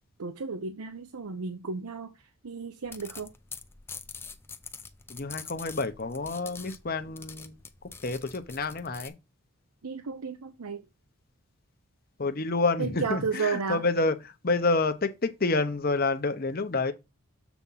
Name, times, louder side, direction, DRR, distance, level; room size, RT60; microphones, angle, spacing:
voice 1, 0.2-3.3 9.8-10.8 12.8-13.8, right 5 dB, 85° right, 0.7 m, -33 dB
sound 1, 2.8-9.1, left 5 dB, 10° left, 0.4 m, -45 dB
voice 2, 5.1-7.6 8.0-9.1 12.2-16.9, left 3 dB, 40° left, 0.8 m, -28 dB
7.1 x 3.6 x 5.5 m
head